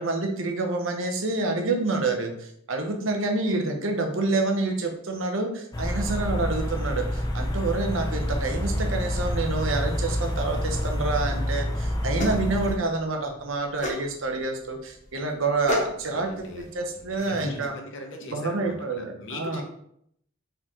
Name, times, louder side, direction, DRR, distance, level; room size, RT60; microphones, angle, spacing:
voice 1, 0.0-17.7 18.2-19.6, right 3 dB, 70° right, 3 dB, 0.8 m, -28 dB
sound 1, 5.7-12.8, left 1 dB, 20° left, 0.6 m, -28 dB
sound 2, 12.1-17.7, left 1 dB, 35° left, 0.9 m, -36 dB
voice 2, 16.0-19.6, left 2 dB, 60° left, 3 dB, 0.9 m, -41 dB
4.5 x 3.8 x 3.0 m, 0.70 s
head